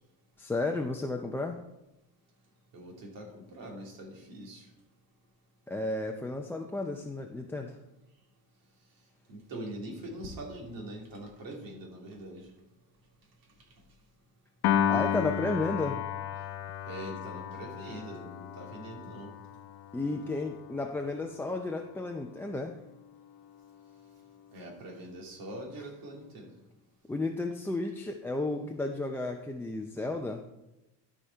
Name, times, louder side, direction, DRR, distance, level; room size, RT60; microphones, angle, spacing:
voice 1, 0.4-1.6 5.7-7.8 14.9-16.0 19.9-22.8 27.1-30.4, left 2 dB, 5° left, 2 dB, 0.4 m, -33 dB
voice 2, 2.7-4.7 9.3-12.5 16.9-19.3 24.5-26.5, right 1 dB, 60° right, 0 dB, 2.6 m, -43 dB
Piano, 14.6-21.0, left 10 dB, 80° left, 0.8 m, -33 dB
13.0 x 5.1 x 4.4 m, 0.98 s
cardioid pair, 125°, 39 cm